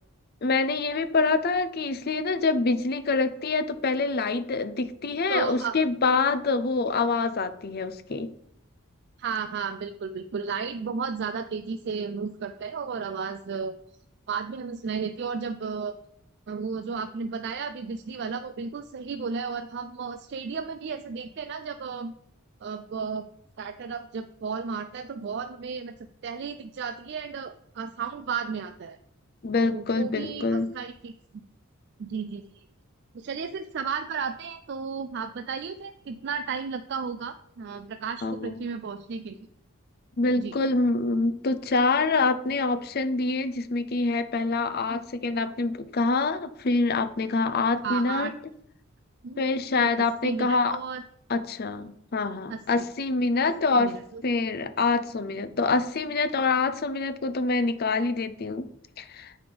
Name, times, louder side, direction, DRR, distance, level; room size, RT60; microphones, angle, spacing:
voice 1, 0.4-8.3 29.4-30.7 38.2-38.6 40.2-48.3 49.4-50.8 51.3-53.9 54.2-58.7 59.0-59.3, left 3 dB, 45° left, 12 dB, 0.6 m, -26 dB
voice 2, 5.3-5.8 9.2-13.7 14.3-16.0 16.5-22.1 22.6-23.3 23.6-25.9 26.2-29.0 29.7-31.1 32.0-32.6 33.1-39.4 40.4-40.5 47.8-48.3 49.2-49.4 49.8-51.0 52.5-52.6 53.4-54.2, right 5 dB, 55° right, 8 dB, 0.4 m, -33 dB
7.6 x 5.0 x 5.2 m, 0.71 s
head